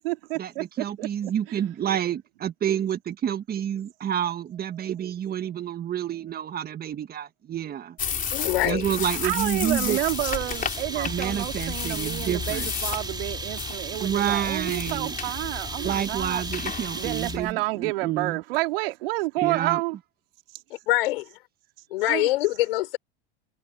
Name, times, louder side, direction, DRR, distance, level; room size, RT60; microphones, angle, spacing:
voice 1, 0.0-0.6 1.0-1.1 1.5-1.6 8.6-8.7 9.2-16.4 17.0-20.0 22.1-22.3, right 21 dB, 75° right, 3.6 m, -29 dB
voice 2, 0.8-8.0 8.6-10.0 10.9-12.7 14.0-15.2 15.8-18.4 19.4-19.8, right 10 dB, 30° right, 1.6 m, -29 dB
sound 1, 8.0-17.5, left 7 dB, 30° left, 3.8 m, -33 dB
voice 3, 8.3-8.9 20.9-21.2 21.9-23.0, left 17 dB, 75° left, 5.2 m, -24 dB
sound 2, 9.9-17.6, right 4 dB, 15° right, 3.6 m, -36 dB
hypercardioid pair, 100°, 29 cm